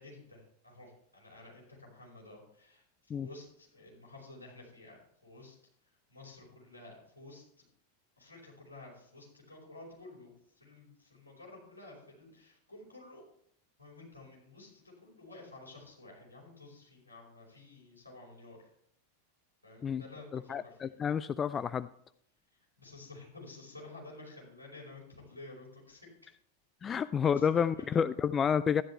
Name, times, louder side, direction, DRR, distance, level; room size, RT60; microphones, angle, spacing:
voice 1, 0.0-5.6 6.1-7.6 8.2-13.2 13.8-18.7 19.6-20.9 22.8-26.3 26.9-27.8, left 2 dB, 80° left, -2 dB, 5.0 m, -52 dB
voice 2, 20.3-21.9 26.8-28.8, left 7 dB, 20° left, 15 dB, 0.3 m, -30 dB
12.5 x 11.0 x 3.4 m, 0.68 s
figure-of-eight pair, 90°, 0 cm